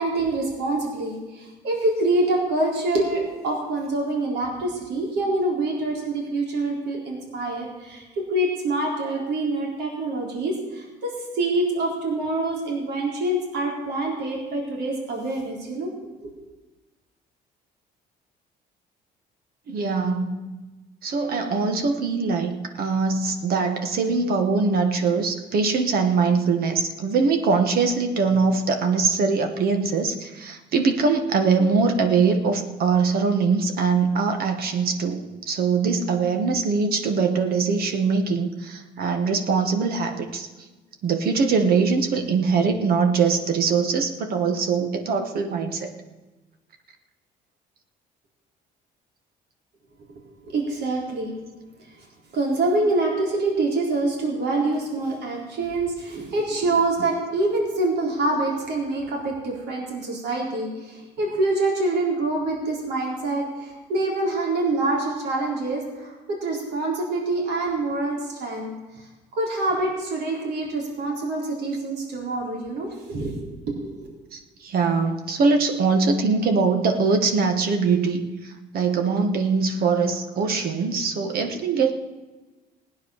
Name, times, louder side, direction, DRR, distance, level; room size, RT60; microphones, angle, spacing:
voice 1, 0.0-15.9 16.2-16.3 50.4-51.3 51.8-51.9 52.3-73.4 73.7-74.1, right 2 dB, 80° right, -1 dB, 4.0 m, -26 dB
voice 2, 19.7-20.5 21.0-40.5 41.0-45.9 74.3-81.9, right 4 dB, 65° right, 6 dB, 1.6 m, -22 dB
17.0 x 9.4 x 6.5 m, 1.2 s
cardioid pair, 110°, 17 cm